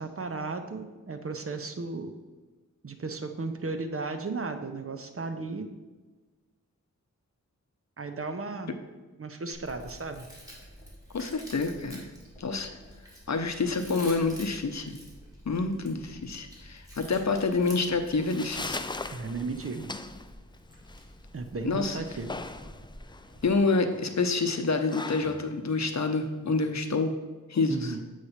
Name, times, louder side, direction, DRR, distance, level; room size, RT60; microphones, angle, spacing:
voice 1, 0.0-2.1 2.8-5.7 8.0-8.8 9.2-10.3 19.1-19.9 21.3-22.3 27.7-28.0, right 3 dB, 45° right, 7 dB, 0.7 m, -35 dB
Chewing mastication, 9.5-23.6, equal, 10° right, 2.3 m, -49 dB
voice 2, 11.1-12.1 12.4-12.7 13.3-15.0 15.5-18.8 21.6-22.0 23.4-27.1 27.5-28.0, left 3 dB, 60° left, 6 dB, 0.7 m, -27 dB
sound 1, 17.9-26.9, left 3 dB, 15° left, 0.3 m, -41 dB
7.8 x 3.2 x 5.6 m, 1.3 s
wide cardioid pair, 60°, 32 cm